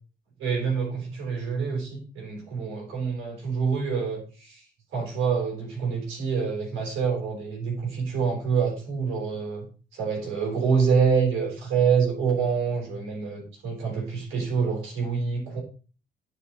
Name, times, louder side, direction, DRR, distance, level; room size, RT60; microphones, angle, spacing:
voice 1, 0.4-4.6 4.9-9.7 9.9-15.6, right 6 dB, 90° right, 0 dB, 4.1 m, -26 dB
9.6 x 5.0 x 4.2 m, 0.37 s
cardioid pair, 90°, 20 cm